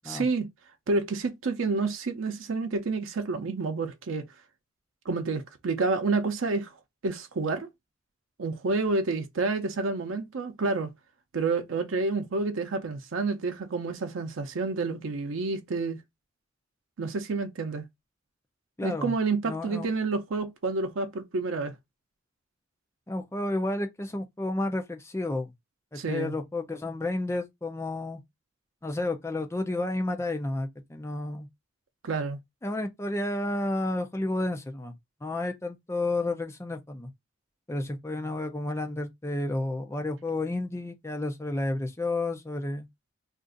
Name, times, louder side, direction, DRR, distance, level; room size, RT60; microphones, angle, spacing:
voice 1, 0.0-0.5 0.9-4.2 5.1-6.7 7.0-7.7 8.4-10.9 11.3-16.0 17.0-17.8 18.8-21.7 26.0-26.3 32.0-32.4, right 3 dB, 90° right, 0.5 m, -29 dB
voice 2, 18.8-19.1 19.4-19.9 23.1-25.5 25.9-28.2 28.8-31.5 32.6-37.1 37.7-42.9, left 2 dB, 15° left, 0.4 m, -31 dB
2.5 x 2.4 x 3.7 m
head